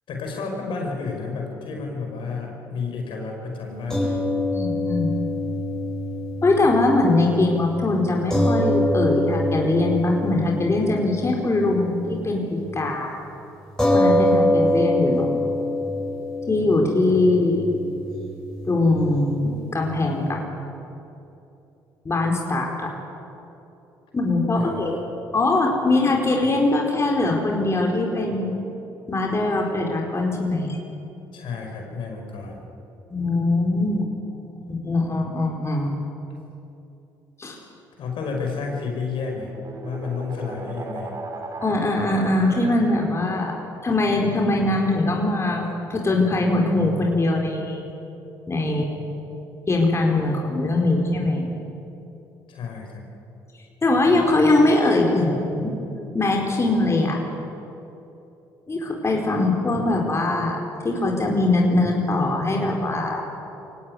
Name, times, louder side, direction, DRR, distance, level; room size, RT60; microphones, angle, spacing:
voice 1, 0.1-4.2 24.6-24.9 31.3-32.6 38.0-39.5 39.8-41.2 52.5-53.1, left 4 dB, 65° left, 1 dB, 5.6 m, -31 dB
sound 1, 3.9-12.4 12.7-12.9 13.8-20.3, left 1 dB, 5° left, 8.0 m, -25 dB
voice 2, 4.5-5.1 6.4-13.2 13.9-15.3 16.5-17.6 18.7-20.4 22.0-22.9 24.1-25.0 25.3-28.6 29.1-30.8 33.1-34.0 34.7-35.9 37.4-37.6 41.6-43.5 43.8-47.9 48.5-49.1 49.7-51.5 53.8-55.7 56.1-57.2 58.7-63.2, left 2 dB, 30° left, 0 dB, 4.4 m, -22 dB
sound 2, 38.9-43.4, right 2 dB, 35° right, 3.9 m, -37 dB
23.0 x 18.0 x 9.6 m, 2.9 s
supercardioid pair, 60°, 9 cm